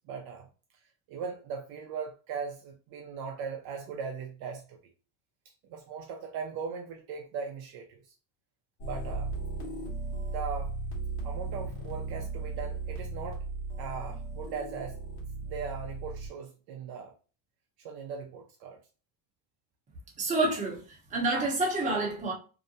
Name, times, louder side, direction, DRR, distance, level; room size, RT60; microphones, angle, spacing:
voice 1, 0.1-0.5 1.1-4.8 5.7-8.0 8.8-9.3 10.3-10.8 11.2-13.4 13.8-15.0 15.4-17.1 17.8-18.8, right 6 dB, 55° right, 0.5 m, -39 dB
sound 1, 8.8-16.3, right 3 dB, 60° left, 1.2 m, -36 dB
voice 2, 20.2-20.8 21.1-22.3, right 2 dB, 15° right, 0.7 m, -28 dB
2.7 x 2.1 x 2.7 m
cardioid pair, 165°, 45 cm